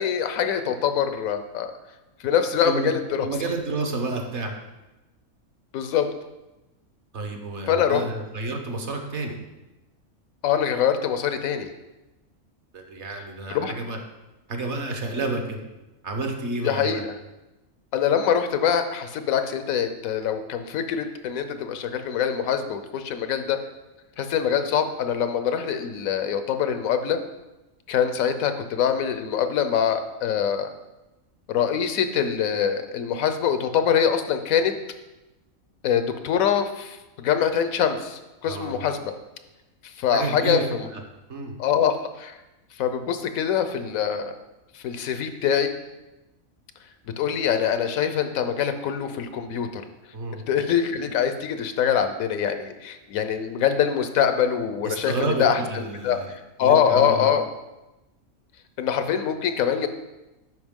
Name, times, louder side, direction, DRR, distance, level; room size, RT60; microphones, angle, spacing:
voice 1, 0.0-1.7 2.2-3.3 5.7-6.1 7.7-8.0 10.4-11.7 13.5-13.7 16.6-17.1 17.9-23.6 24.2-27.2 27.9-30.7 31.5-34.7 35.8-39.1 39.8-40.8 41.6-42.4 42.8-44.4 44.7-45.7 47.2-49.8 50.3-57.5 58.8-59.9, left 8 dB, 90° left, 9 dB, 1.1 m, -24 dB
voice 2, 2.6-2.9 3.2-4.5 7.1-9.4 12.7-14.0 14.5-15.6 16.0-17.0 38.4-38.7 40.1-41.0 41.3-41.5 50.1-50.4 54.8-56.3 56.6-57.3, right 3 dB, 60° right, 4 dB, 1.1 m, -30 dB
8.0 x 5.6 x 3.6 m, 1.0 s
omnidirectional pair, 1.4 m